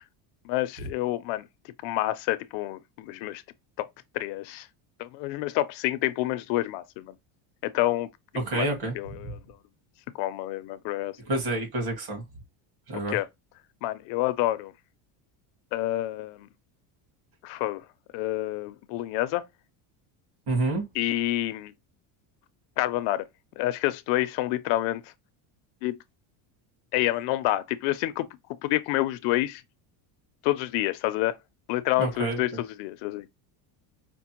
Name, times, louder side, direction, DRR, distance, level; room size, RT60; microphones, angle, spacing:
voice 1, 0.4-1.4 1.8-3.4 3.8-3.9 4.1-4.7 5.0-7.1 7.6-8.1 8.5-8.7 8.9-9.4 10.2-11.2 13.1-13.3 13.8-14.7 15.7-16.5 17.4-17.8 18.1-19.4 21.0-21.7 22.8-23.2 23.6-25.0 25.8-26.0 26.9-28.3 28.6-29.6 30.4-31.3 31.7-33.3, left 16 dB, 70° left, 0.6 m, -28 dB
voice 2, 8.3-9.3 11.3-12.2 12.9-13.2 20.5-20.8 32.0-32.6, right 2 dB, 50° right, 1.9 m, -29 dB
5.2 x 2.1 x 2.9 m
cardioid pair, 160°, 47 cm